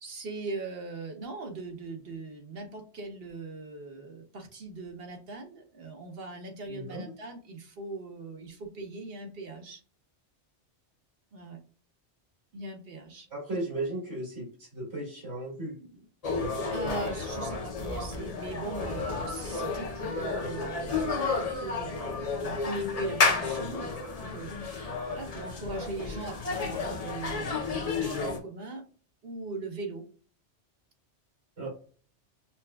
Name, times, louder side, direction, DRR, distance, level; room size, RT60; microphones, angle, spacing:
voice 1, 0.0-9.8 11.3-11.6 12.5-13.3 16.7-23.9 24.2-28.8 29.2-30.0 31.6-31.7, right 3 dB, 60° right, 3 dB, 1.1 m, -40 dB
voice 2, 6.6-7.1 13.3-16.0 31.6-31.7, right 2 dB, 90° right, -6 dB, 2.4 m, -36 dB
sound 1, 16.2-28.4, left 4 dB, 40° left, 0.6 m, -31 dB
5.8 x 2.3 x 2.2 m, 0.41 s
omnidirectional pair, 1.2 m